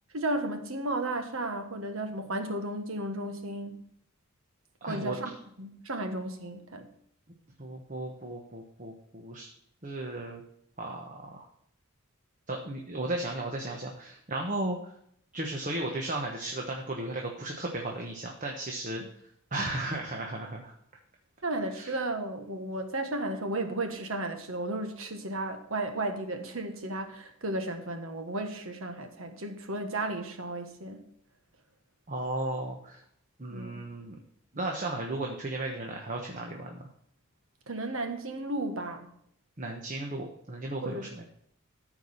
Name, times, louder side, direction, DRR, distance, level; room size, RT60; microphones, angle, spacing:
voice 1, 0.1-3.8 4.9-5.3 5.6-6.9 21.4-31.0 33.5-33.8 37.7-39.1 40.8-41.1, right 2 dB, 70° right, 6 dB, 1.4 m, -34 dB
voice 2, 4.8-5.2 7.6-9.5 9.8-10.4 10.8-11.5 12.5-14.9 15.3-19.0 19.5-20.7 21.7-21.9 32.1-33.0 33.4-34.2 34.5-36.8 39.6-41.2, right 2 dB, 35° right, 1 dB, 1.2 m, -35 dB
13.5 x 4.9 x 5.6 m, 0.68 s
head